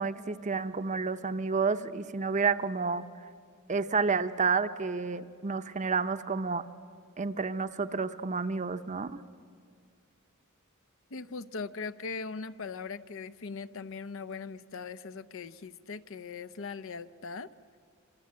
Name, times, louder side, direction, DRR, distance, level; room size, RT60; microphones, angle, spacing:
voice 1, 0.0-3.0 3.7-6.6 7.2-9.2, right 4 dB, 35° right, 11 dB, 0.8 m, -30 dB
voice 2, 11.1-17.5, left 4 dB, 65° left, 13 dB, 0.7 m, -40 dB
26.5 x 26.5 x 8.6 m, 2.2 s
head